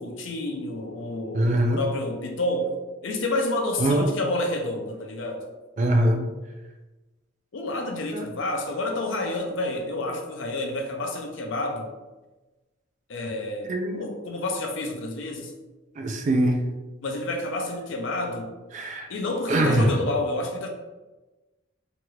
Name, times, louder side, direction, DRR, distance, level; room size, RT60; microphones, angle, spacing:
voice 1, 0.0-2.7 3.0-5.4 7.5-11.9 13.1-15.5 17.0-18.5 19.1-20.7, left 2 dB, 65° left, 2 dB, 0.5 m, -29 dB
voice 2, 1.3-1.8 3.8-4.1 5.8-6.2 8.1-8.2 13.7-14.1 16.0-16.6 18.7-19.1 19.5-19.9, right 1 dB, 35° right, 4 dB, 0.3 m, -22 dB
2.9 x 2.4 x 3.0 m, 1.2 s
head